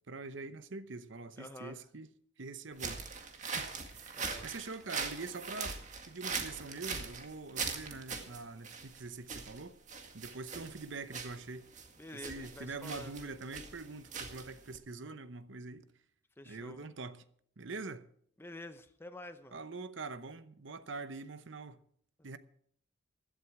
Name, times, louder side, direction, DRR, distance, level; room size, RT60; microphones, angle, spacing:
voice 1, 0.1-2.1 2.4-3.0 3.4-3.7 4.0-5.8 6.1-9.8 10.1-11.7 12.1-15.9 16.4-17.2 17.6-18.1 19.5-21.8 22.2-22.4, right 3 dB, 65° right, 0.8 m, -44 dB
voice 2, 1.4-1.8 4.1-4.5 12.0-13.2 16.4-16.8 18.4-19.6, left 1 dB, 10° left, 0.7 m, -48 dB
sound 1, 2.7-14.8, right 5 dB, 40° right, 1.9 m, -41 dB
16.0 x 11.5 x 4.8 m
head